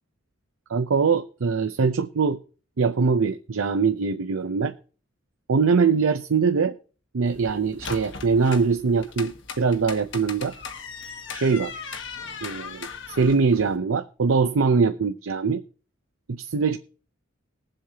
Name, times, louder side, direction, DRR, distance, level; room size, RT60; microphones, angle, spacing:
voice 1, 0.7-2.4 2.8-4.7 5.5-6.7 7.1-10.5 11.3-11.7 12.4-15.6 16.3-16.8, right 5 dB, 85° right, 0.6 m, -22 dB
sound 1, 7.3-13.8, left 5 dB, 60° left, 1.4 m, -38 dB
20.5 x 7.7 x 2.8 m
head